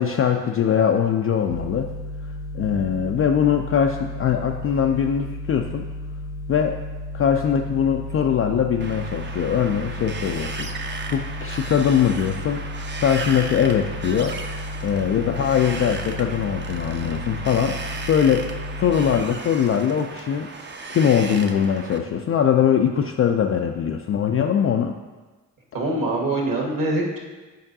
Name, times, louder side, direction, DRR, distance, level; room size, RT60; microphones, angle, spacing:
voice 1, 0.0-1.9 2.5-5.8 6.5-6.8 7.1-14.4 14.8-17.8 18.1-18.5 18.8-20.5 20.9-25.0, left 8 dB, 30° left, 3 dB, 0.3 m, -21 dB
sound 1, 1.5-19.2, left 1 dB, 90° left, 0.8 m, -33 dB
Wind, 8.8-22.0, right 4 dB, 25° right, 0.6 m, -35 dB
voice 2, 25.7-27.2, right 2 dB, 40° right, 0 dB, 1.7 m, -24 dB
8.9 x 5.1 x 2.7 m, 1.3 s
figure-of-eight pair, 40°, 48 cm